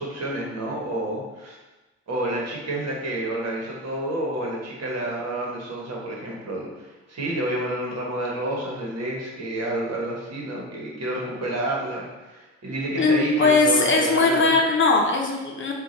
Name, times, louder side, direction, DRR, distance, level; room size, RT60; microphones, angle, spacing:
voice 1, 0.0-1.6 2.1-14.5, right 1 dB, 55° right, -3 dB, 1.3 m, -29 dB
voice 2, 13.0-15.7, left 3 dB, 40° left, 0 dB, 0.7 m, -20 dB
4.6 x 2.4 x 4.1 m, 1.1 s
cardioid pair, 90°, 30 cm